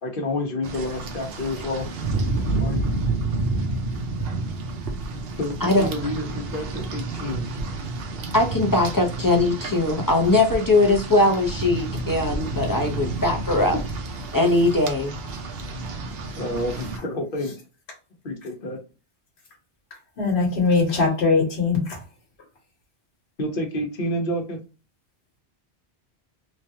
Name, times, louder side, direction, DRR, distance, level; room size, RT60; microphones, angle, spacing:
voice 1, 0.0-1.9 2.6-2.8 5.4-7.5 16.4-17.5 18.2-18.8 23.4-24.6, left 1 dB, 55° left, 3 dB, 0.9 m, -29 dB
Rain, 0.6-17.0, right 2 dB, 65° right, 0.8 m, -30 dB
voice 2, 8.3-13.8 14.3-15.2, left 2 dB, 25° left, 1 dB, 0.5 m, -20 dB
voice 3, 20.2-22.0, left 4 dB, 80° left, -2 dB, 1.2 m, -21 dB
3.1 x 2.3 x 2.7 m, 0.31 s
omnidirectional pair, 1.1 m